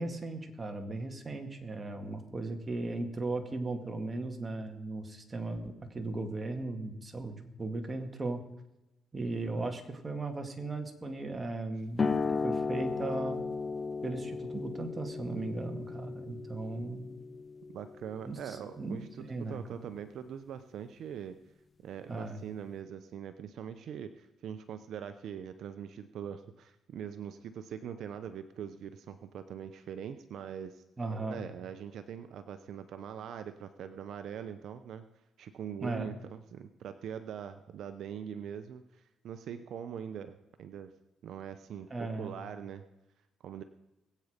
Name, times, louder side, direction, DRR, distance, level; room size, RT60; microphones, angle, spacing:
voice 1, 0.0-8.4 9.1-12.1 12.4-13.4 14.0-17.1 18.3-19.6 22.1-22.4 31.0-31.4 35.8-36.1 41.9-42.3, right 2 dB, 25° right, 4 dB, 2.1 m, -37 dB
sound 1, 12.0-19.1, left 4 dB, 30° left, 0.8 m, -36 dB
voice 2, 17.7-21.4 21.8-30.8 31.3-35.1 35.4-40.9 41.2-42.8 43.4-43.6, right 8 dB, 70° right, 10 dB, 0.7 m, -42 dB
20.5 x 8.4 x 5.1 m, 0.96 s
cardioid pair, 90°, 0 cm